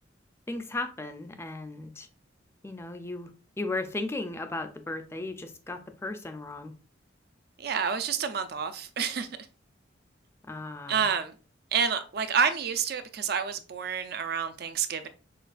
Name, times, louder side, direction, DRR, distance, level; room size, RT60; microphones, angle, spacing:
voice 1, 0.5-2.1 2.6-3.3 3.6-6.7 10.4-11.1, left 2 dB, 15° left, 0.4 m, -36 dB
voice 2, 7.6-9.3 10.9-11.4 11.7-15.1, right 7 dB, 55° right, 0.4 m, -28 dB
6.4 x 2.3 x 2.4 m
head